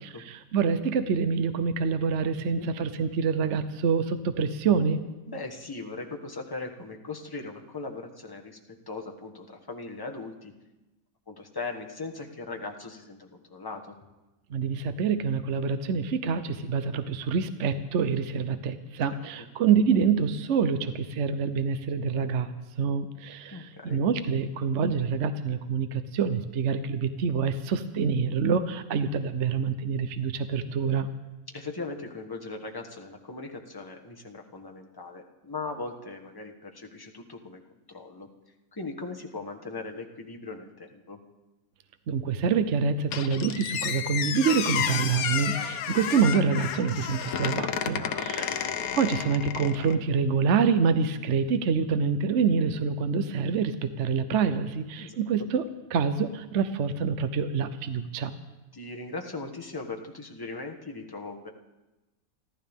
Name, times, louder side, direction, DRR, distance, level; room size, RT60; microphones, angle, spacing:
voice 1, 0.0-5.0 14.5-31.1 42.1-48.4 49.0-55.6 55.9-58.3, right 6 dB, 60° right, 10 dB, 1.0 m, -26 dB
voice 2, 5.3-8.6 8.9-10.5 11.3-14.0 23.5-24.0 31.5-37.6 37.9-38.3 38.7-41.2 47.9-48.6 55.0-55.2 58.7-61.5, left 3 dB, 15° left, 2 dB, 1.2 m, -39 dB
Squeak, 43.1-50.0, left 8 dB, 85° left, 1.3 m, -31 dB
29.0 x 12.0 x 3.6 m, 1.1 s
omnidirectional pair, 1.5 m